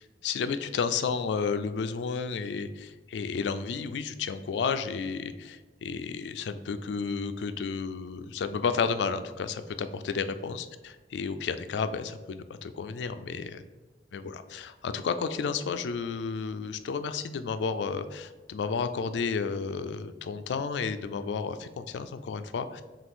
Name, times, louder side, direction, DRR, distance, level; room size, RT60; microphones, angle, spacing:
voice 1, 0.2-10.7 11.1-13.6 14.1-22.8, left 5 dB, 80° left, 11 dB, 0.3 m, -32 dB
5.8 x 2.4 x 3.6 m, 1.2 s
head